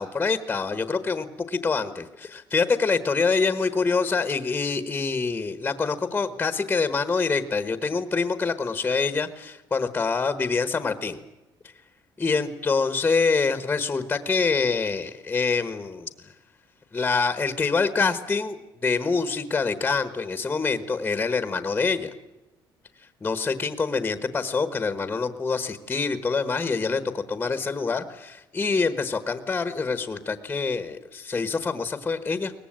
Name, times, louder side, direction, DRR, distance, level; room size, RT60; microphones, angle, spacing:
voice 1, 0.0-11.2 12.2-16.1 16.9-18.6 18.8-22.1 23.2-32.5, left 4 dB, 15° left, 11 dB, 1.3 m, -25 dB
23.0 x 19.5 x 8.9 m, 1.0 s
cardioid pair, 175°, 9 cm